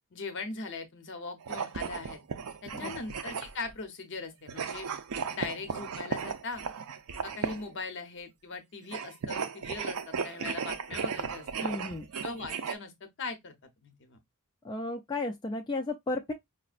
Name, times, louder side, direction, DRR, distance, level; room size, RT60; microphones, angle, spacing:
voice 1, 0.1-2.2 2.6-4.9 5.3-6.6 7.2-11.7 12.2-12.9 13.2-13.5 13.8-14.2, left 4 dB, 55° left, 0.8 m, -40 dB
sound 1, 1.4-3.7 4.5-7.8 8.8-12.7, right 6 dB, 75° right, 0.5 m, -36 dB
voice 2, 11.6-12.1 14.6-16.3, left 2 dB, 20° left, 0.3 m, -34 dB
5.0 x 2.1 x 2.3 m
head